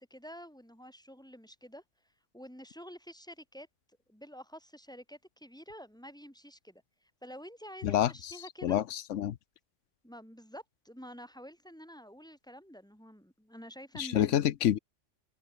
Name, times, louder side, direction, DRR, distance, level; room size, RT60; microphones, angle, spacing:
voice 1, 0.0-1.8 2.3-3.7 4.1-8.8 10.0-14.5, equal, 5° left, 6.3 m, -49 dB
voice 2, 7.8-8.3 8.6-9.3 14.0-14.8, left 11 dB, 90° left, 1.1 m, -28 dB
omnidirectional pair, 1.2 m